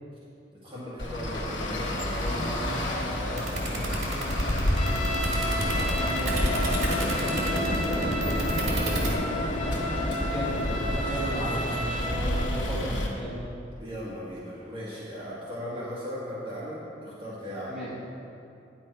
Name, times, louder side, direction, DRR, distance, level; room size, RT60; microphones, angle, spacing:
voice 1, 0.5-4.3 5.6-9.1 13.8-17.8, equal, 30° right, -9 dB, 1.8 m, -37 dB
Traffic noise roadway noise, 1.0-13.1, left 1 dB, 70° left, 1.4 m, -29 dB
sound 1, 3.4-9.1, right 2 dB, 80° right, 1.9 m, -32 dB
Trumpet, 4.8-12.4, left 1 dB, 35° left, 0.8 m, -33 dB
voice 2, 10.3-13.4 17.7-17.9, right 1 dB, ahead, -10 dB, 2.5 m, -34 dB
9.9 x 7.3 x 4.6 m, 2.6 s
head